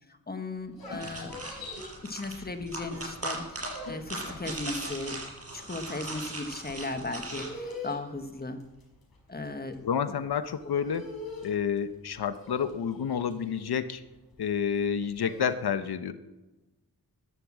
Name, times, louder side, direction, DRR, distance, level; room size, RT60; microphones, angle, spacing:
voice 1, 0.1-1.4 2.0-5.2 5.5-8.6 9.3-9.9, left 2 dB, 25° left, 7 dB, 1.4 m, -37 dB
sound 1, 0.6-2.9 3.2-15.5, left 2 dB, 70° left, 5.3 m, -44 dB
sound 2, 1.0-7.5, right 2 dB, 40° right, 5.4 m, -39 dB
voice 2, 9.8-11.1 11.4-14.0 14.4-16.1, left 7 dB, 85° left, 11 dB, 1.0 m, -29 dB
13.5 x 11.5 x 7.5 m, 1.1 s
wide cardioid pair, 90°, 37 cm